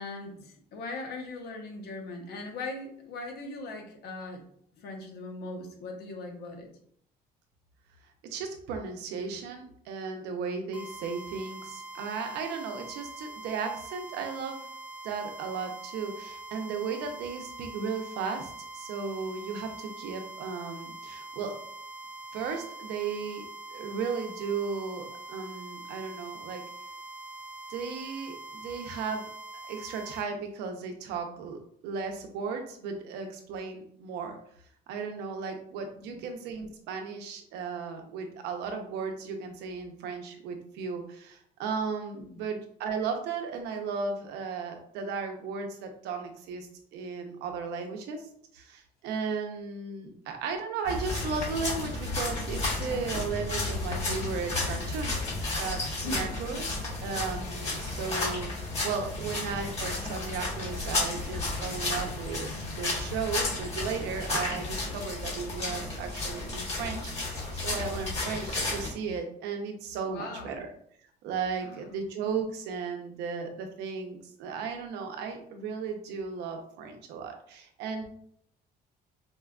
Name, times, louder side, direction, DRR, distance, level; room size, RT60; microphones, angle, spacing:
voice 1, 0.0-4.4 4.7-6.7 36.1-36.2 42.1-42.4 50.0-50.1 56.0-56.3 70.0-70.6 71.6-71.9, left 2 dB, 70° left, 2 dB, 0.8 m, -40 dB
voice 2, 8.2-14.6 15.0-21.5 22.3-23.4 23.7-26.6 27.7-29.3 29.6-34.4 34.9-48.3 48.5-62.5 62.8-70.7 71.2-78.0, right 5 dB, 85° right, 4 dB, 0.6 m, -35 dB
sound 1, 10.7-30.3, right 2 dB, 5° right, 0.7 m, -44 dB
sound 2, 50.8-68.9, left 2 dB, 40° left, 1.4 m, -32 dB
4.3 x 2.1 x 2.4 m, 0.66 s
cardioid pair, 110°, 17 cm